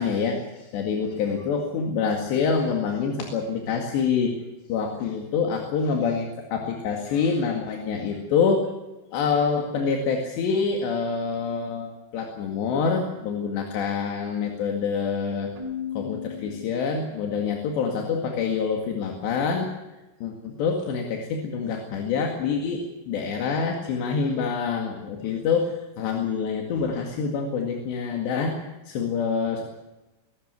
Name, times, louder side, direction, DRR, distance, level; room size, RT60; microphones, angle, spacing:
voice 1, 0.0-4.4 4.7-8.7 9.1-15.5 16.0-19.7 20.2-29.6, left 5 dB, 80° left, 2 dB, 4.3 m, -26 dB
Keyboard (musical), 15.6-17.4, left 8 dB, 75° right, 4.7 m, -36 dB
22.5 x 13.0 x 9.6 m, 1.1 s
omnidirectional pair, 4.9 m